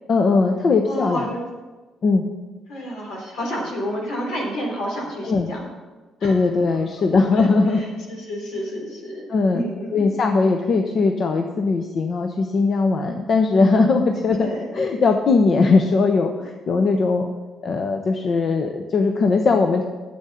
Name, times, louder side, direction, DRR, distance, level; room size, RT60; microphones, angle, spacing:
voice 1, 0.1-1.3 2.0-2.2 5.2-5.5 6.2-7.8 9.3-9.6 9.9-14.5 14.7-17.3 17.6-19.8, left 4 dB, 55° left, 4 dB, 0.8 m, -19 dB
voice 2, 0.9-1.4 2.7-5.6 6.2-6.3 6.7-7.1 7.3-9.2 9.5-10.0 14.4-14.6, equal, 80° left, -1 dB, 3.6 m, -30 dB
9.7 x 7.9 x 5.7 m, 1.3 s
cardioid pair, 90°, 0 cm